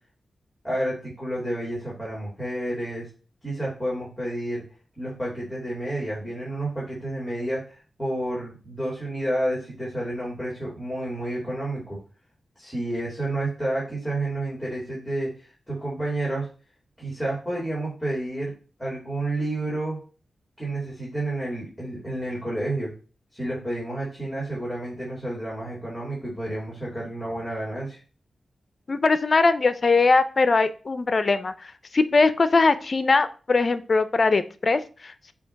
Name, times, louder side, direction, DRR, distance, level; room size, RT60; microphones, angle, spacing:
voice 1, 0.6-3.1 3.4-4.6 5.0-12.0 12.6-16.5 17.0-18.5 18.8-20.0 20.6-22.9 23.3-28.0, right 1 dB, 5° left, -6 dB, 3.0 m, -30 dB
voice 2, 28.9-35.3, left 3 dB, 45° left, 12 dB, 0.6 m, -21 dB
7.0 x 2.9 x 5.8 m, 0.37 s
wide cardioid pair, 95°, 0 cm